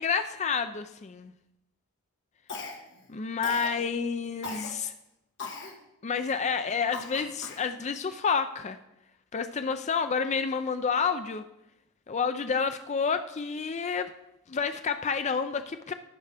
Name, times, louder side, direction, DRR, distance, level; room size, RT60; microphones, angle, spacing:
voice 1, 0.0-1.3 3.1-4.9 6.0-8.8 9.3-11.4 12.1-14.1 14.5-15.9, left 5 dB, 30° left, 9 dB, 0.4 m, -29 dB
Cough, 2.5-3.0 3.4-3.8 4.4-4.7 5.4-5.7 6.3-6.4 6.9-7.7, left 3 dB, 55° left, 1.4 m, -38 dB
12.0 x 9.3 x 3.5 m, 0.88 s
head